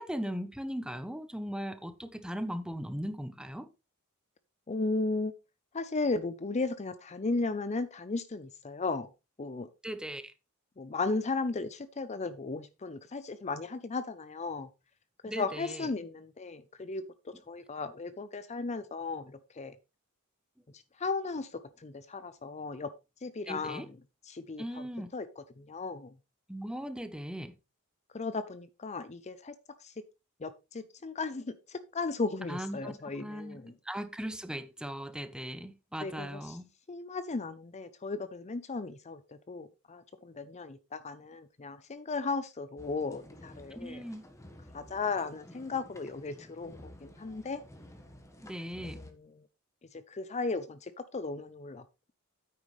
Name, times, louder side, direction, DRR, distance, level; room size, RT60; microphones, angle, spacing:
voice 1, 0.0-3.7 9.8-10.3 15.2-15.9 23.5-23.9 24.6-25.1 26.5-27.5 32.5-32.9 33.2-33.6 33.9-36.7 43.7-44.2 48.4-49.0, equal, 5° right, 0.9 m, -38 dB
voice 2, 4.7-5.3 5.7-9.1 9.4-9.7 10.8-14.7 15.2-19.8 20.7-22.9 23.2-24.0 24.3-24.8 25.1-26.1 28.1-29.5 29.8-30.0 30.4-33.7 36.0-36.6 36.9-44.1 44.7-47.6 48.8-49.5 49.9-51.8, left 3 dB, 30° left, 0.6 m, -36 dB
sound 1, 42.8-49.1, left 1 dB, 15° left, 1.4 m, -52 dB
9.4 x 8.6 x 3.2 m
head